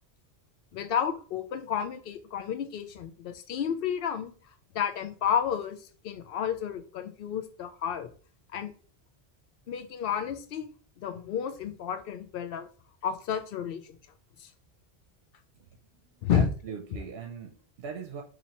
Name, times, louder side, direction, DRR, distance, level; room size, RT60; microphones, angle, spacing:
voice 1, 0.7-4.3 4.7-5.8 6.0-8.1 8.5-8.7 9.7-10.7 11.0-12.7 13.0-13.8 14.4-14.5 16.2-16.5, left 8 dB, 65° left, 8 dB, 0.7 m, -31 dB
voice 2, 15.6-18.2, right 6 dB, 70° right, 2 dB, 0.8 m, -41 dB
2.8 x 2.8 x 4.2 m, 0.40 s
omnidirectional pair, 1.1 m